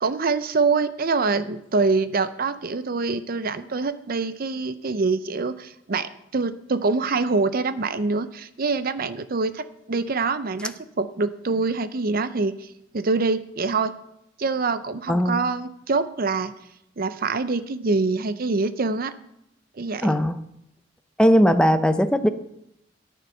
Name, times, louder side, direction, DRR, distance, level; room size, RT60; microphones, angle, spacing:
voice 1, 0.0-12.7 12.9-13.9 14.4-16.5 17.0-19.1 19.8-20.1, right 4 dB, 50° right, 13 dB, 0.6 m, -25 dB
voice 2, 20.0-20.4 21.2-22.3, equal, 5° left, 9 dB, 0.6 m, -18 dB
13.5 x 9.3 x 5.6 m, 0.80 s
head